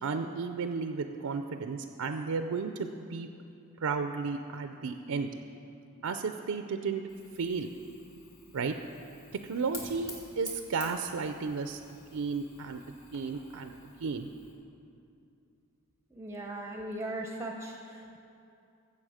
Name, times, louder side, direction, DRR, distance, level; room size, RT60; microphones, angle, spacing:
voice 1, 0.0-3.3 3.8-5.3 6.0-7.0 7.4-7.7 8.5-8.7 9.4-11.8 12.1-12.8 13.1-13.7 14.0-14.3, right 5 dB, 75° right, 7 dB, 0.5 m, -33 dB
Fire, 7.1-14.5, left 3 dB, 70° left, 2.2 m, -50 dB
voice 2, 16.1-18.2, right 1 dB, 15° right, 1 dB, 0.6 m, -38 dB
15.0 x 7.2 x 4.9 m, 2.7 s
head